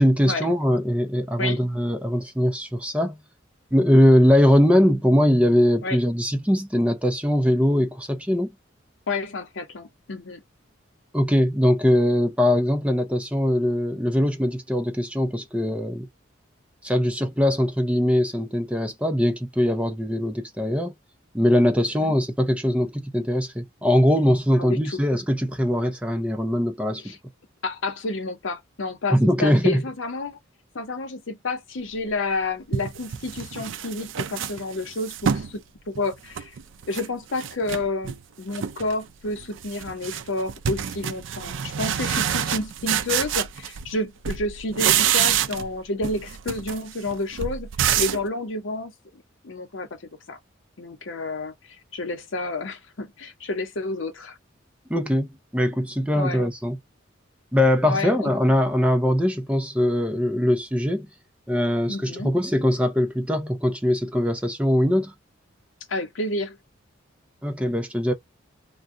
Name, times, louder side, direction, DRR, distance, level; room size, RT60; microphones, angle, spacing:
voice 1, 0.0-3.2 3.7-8.5 11.1-16.1 16.8-20.9 21.3-27.2 29.1-29.8 54.9-55.3 55.5-56.8 57.5-61.1 61.5-65.1 67.4-68.1, equal, 5° right, 0.5 m, -21 dB
voice 2, 9.1-10.4 22.0-22.2 24.5-25.0 27.0-27.2 27.6-30.4 30.7-36.6 36.9-47.7 48.0-50.4 50.8-54.4 56.1-56.4 57.8-58.3 61.9-62.3 65.9-66.6, left 2 dB, 70° left, 0.8 m, -30 dB
sound 1, 32.1-32.2 32.7-35.5 36.0-37.1 37.4-38.2 38.5-39.0 39.3-44.0 44.2-45.8 46.0-48.3, right 9 dB, 70° right, 0.4 m, -27 dB
2.6 x 2.2 x 3.5 m
head